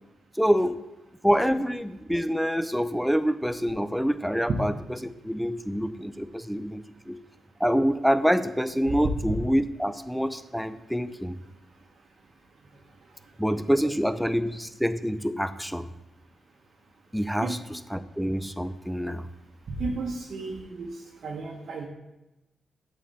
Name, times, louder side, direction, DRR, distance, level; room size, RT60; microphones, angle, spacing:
voice 1, 0.4-0.8 1.2-4.7 5.2-7.2 7.6-11.4 13.4-15.9 17.1-19.3, equal, ahead, 12 dB, 0.4 m, -26 dB
voice 2, 19.8-21.9, right 3 dB, 70° right, 0 dB, 0.8 m, -33 dB
7.1 x 4.2 x 4.0 m, 1.0 s
cardioid pair, 60°, 0 cm